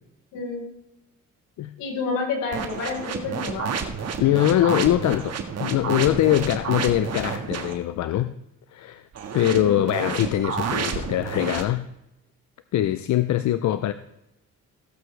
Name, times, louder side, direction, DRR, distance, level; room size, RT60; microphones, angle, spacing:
voice 1, 0.3-0.7 1.8-3.8 9.3-9.8, left 4 dB, 90° left, 4.3 m, -29 dB
sound 1, 2.5-7.8 9.1-11.6, right 6 dB, 55° right, 1.7 m, -30 dB
voice 2, 4.2-8.3 8.7-9.1 9.3-11.9 12.7-13.9, left 12 dB, 70° left, 0.6 m, -22 dB
17.0 x 8.0 x 3.3 m
cardioid pair, 90°, 30 cm